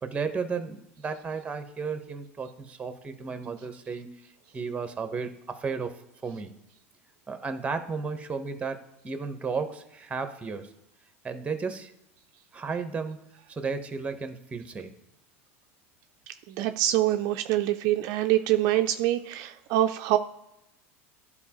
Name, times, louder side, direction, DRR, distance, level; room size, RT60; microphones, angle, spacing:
voice 1, 0.0-4.1 4.5-6.0 6.2-6.5 7.3-10.7 11.2-11.9 12.5-13.2 13.5-14.9, right 5 dB, 20° right, 8 dB, 0.9 m, -33 dB
voice 2, 16.5-20.2, right 13 dB, 55° right, 7 dB, 0.4 m, -25 dB
11.5 x 4.1 x 2.9 m, 0.88 s
hypercardioid pair, 100°, 7 cm